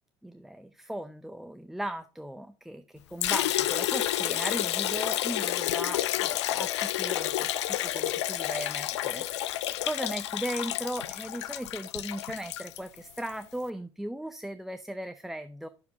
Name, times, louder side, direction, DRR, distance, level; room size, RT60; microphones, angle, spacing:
voice 1, 0.2-15.7, right 1 dB, ahead, 10 dB, 0.5 m, -37 dB
Liquid, 3.2-13.3, left 13 dB, 75° left, 0.4 m, -30 dB
9.6 x 7.0 x 3.6 m, 0.32 s
figure-of-eight pair, 65°, 15 cm